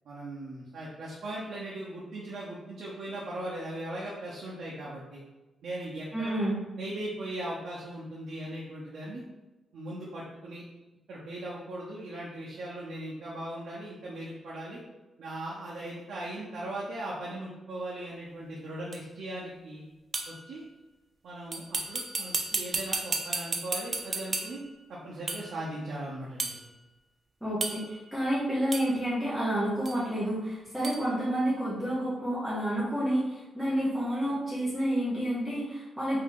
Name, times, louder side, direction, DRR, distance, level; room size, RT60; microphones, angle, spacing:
voice 1, 0.0-5.2 5.6-6.3 6.8-9.2 9.7-10.6 11.1-14.8 15.2-19.8 20.3-20.6 21.2-24.6 24.9-26.6, right 1 dB, 70° right, -6 dB, 0.7 m, -39 dB
voice 2, 6.1-6.6 27.4-36.2, right 1 dB, 5° right, -10 dB, 1.0 m, -29 dB
sound 1, 18.9-19.0 20.1-20.4 21.5-24.7 25.3-25.6 26.4-26.6 27.6-28.0 28.7-29.0 29.8-30.0 30.8-31.0, right 3 dB, 35° right, 0.3 m, -33 dB
2.9 x 2.7 x 3.6 m, 1.1 s
wide cardioid pair, 135°, 0 cm